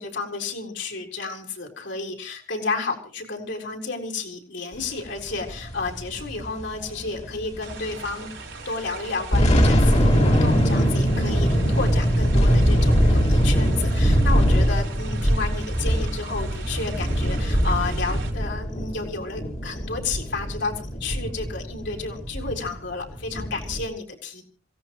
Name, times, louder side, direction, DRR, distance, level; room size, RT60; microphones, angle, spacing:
voice 1, 0.0-8.3 8.6-24.4, left 4 dB, 60° left, 1 dB, 4.2 m, -31 dB
sound 1, 5.3-8.1 8.4-8.5 9.0-23.8, equal, 35° left, 2.4 m, -22 dB
sound 2, 7.6-18.3, right 5 dB, 80° right, 5.0 m, -41 dB
27.0 x 17.5 x 3.1 m, 0.42 s
head